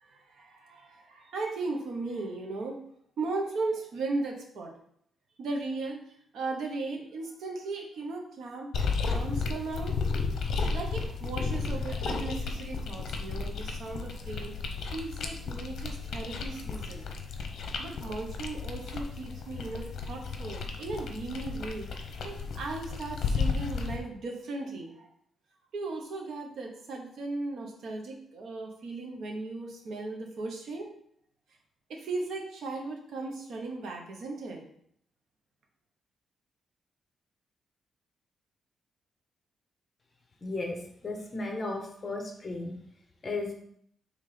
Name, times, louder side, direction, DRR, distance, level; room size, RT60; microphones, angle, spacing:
voice 1, 0.0-2.8 3.2-4.7 5.4-6.0 6.3-8.7 9.0-17.1 17.8-21.9 22.2-25.1 25.7-30.9 31.9-34.6, right 3 dB, 65° right, 1 dB, 1.1 m, -37 dB
sound 1, 8.7-24.0, left 4 dB, 60° left, 0.8 m, -33 dB
voice 2, 40.4-42.7 43.2-43.5, left 2 dB, 30° left, 2 dB, 1.0 m, -35 dB
5.8 x 3.5 x 5.0 m, 0.67 s
wide cardioid pair, 155°, 0 cm